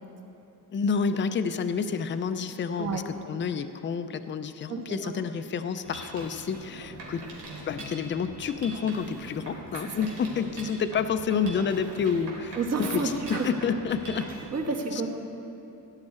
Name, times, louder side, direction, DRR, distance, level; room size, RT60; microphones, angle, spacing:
voice 1, 0.7-7.2 7.7-14.3, left 6 dB, 30° left, 10 dB, 0.5 m, -29 dB
voice 2, 4.7-5.1 9.8-10.1 12.5-13.5 14.4-15.1, right 3 dB, 45° right, 1 dB, 1.4 m, -30 dB
Mechanisms, 5.8-14.4, right 2 dB, 90° right, 3.3 m, -42 dB
17.5 x 10.5 x 4.3 m, 2.7 s
wide cardioid pair, 175°, 36 cm